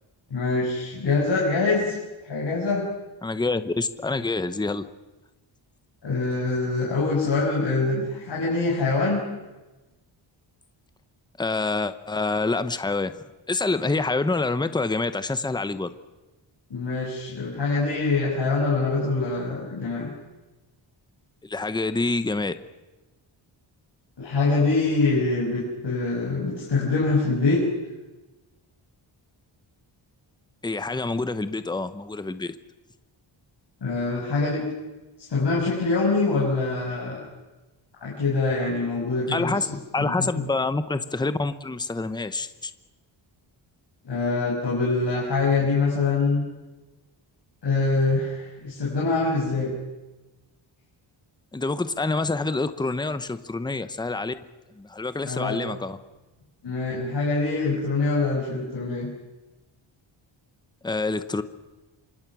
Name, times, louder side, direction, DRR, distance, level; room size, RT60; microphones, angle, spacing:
voice 1, 0.3-2.0 2.2-2.9 6.0-9.2 16.7-20.1 24.2-27.6 33.8-34.6 35.3-37.2 38.0-39.7 40.0-40.5 44.0-46.4 47.6-49.7 55.2-55.6 56.6-59.1, left 3 dB, 55° left, -5 dB, 6.2 m, -24 dB
voice 2, 3.2-4.9 11.4-13.1 13.5-15.9 21.4-22.5 30.6-32.5 39.3-39.7 39.9-42.7 51.5-54.3 54.8-56.0 60.8-61.4, left 3 dB, 10° left, 11 dB, 0.8 m, -27 dB
27.0 x 25.0 x 6.1 m, 1.1 s
wide cardioid pair, 160°, 48 cm